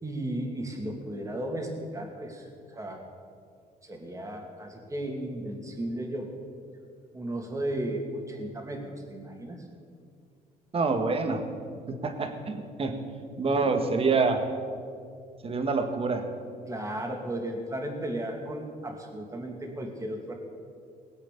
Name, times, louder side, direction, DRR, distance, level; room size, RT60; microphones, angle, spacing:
voice 1, 0.0-2.4 2.7-3.0 3.8-6.3 7.1-9.6 13.5-13.7 16.7-20.3, right 1 dB, 20° right, 2 dB, 2.6 m, -35 dB
voice 2, 10.7-11.4 11.9-13.0 13.4-14.4 15.4-16.2, right 4 dB, 35° right, 6 dB, 1.8 m, -26 dB
20.0 x 8.3 x 6.9 m, 2.2 s
cardioid pair, 110°, 17 cm